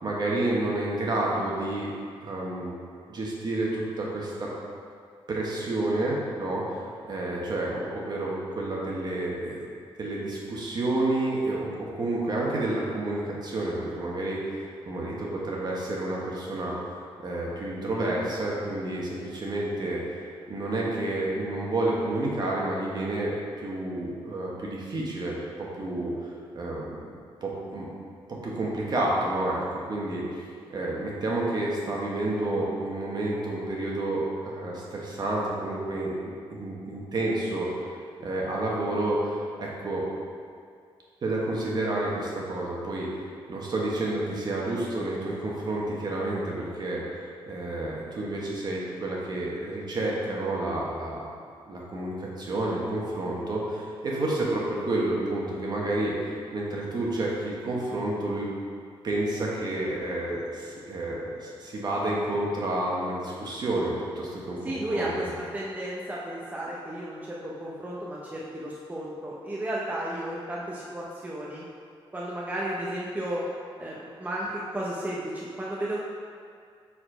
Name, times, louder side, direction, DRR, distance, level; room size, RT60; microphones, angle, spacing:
voice 1, 0.0-1.9 2.2-2.7 3.1-4.5 5.3-9.6 10.0-16.8 17.2-20.2 20.5-23.3 23.6-26.3 26.5-27.9 28.3-29.6 29.9-30.3 30.7-37.7 38.2-40.0 41.2-43.2 43.5-51.3 51.7-58.5 59.0-65.1, right 2 dB, 45° right, -4 dB, 1.2 m, -30 dB
voice 2, 64.6-65.3 65.5-71.6 72.1-73.4 73.8-76.0, right 1 dB, 15° right, -5 dB, 0.6 m, -33 dB
4.9 x 4.2 x 4.9 m, 2.2 s
wide cardioid pair, 125°, 10 cm